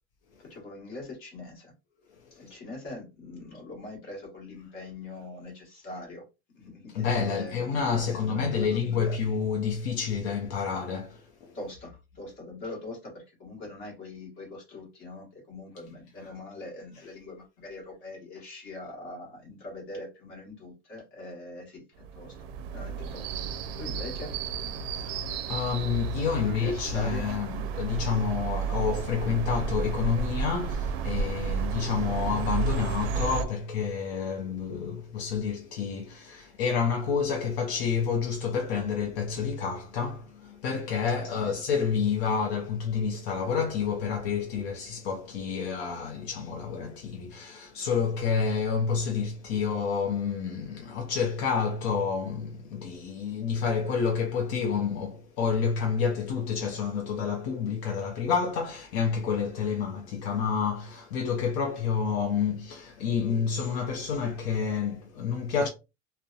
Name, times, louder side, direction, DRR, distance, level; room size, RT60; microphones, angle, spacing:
voice 1, 0.4-1.7 2.3-6.2 6.5-9.2 11.5-22.5 22.7-23.3 23.8-24.3 26.3-27.2 41.2-41.5, left 2 dB, 40° left, 1.2 m, -42 dB
voice 2, 6.9-11.6 25.0-65.7, left 6 dB, 70° left, 0.6 m, -29 dB
sound 1, 22.0-33.4, right 5 dB, 70° right, 0.5 m, -32 dB
2.7 x 2.1 x 2.3 m
cardioid pair, 180°, 32 cm